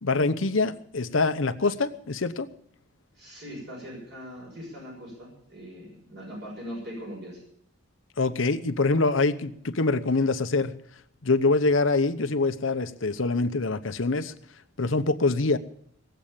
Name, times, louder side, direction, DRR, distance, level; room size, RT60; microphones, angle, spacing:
voice 1, 0.0-2.5 8.2-10.7 11.2-14.3 14.8-15.6, left 3 dB, 85° left, 10 dB, 0.9 m, -24 dB
voice 2, 3.1-7.4, equal, 60° right, -3 dB, 6.6 m, -40 dB
18.5 x 7.9 x 8.8 m, 0.70 s
head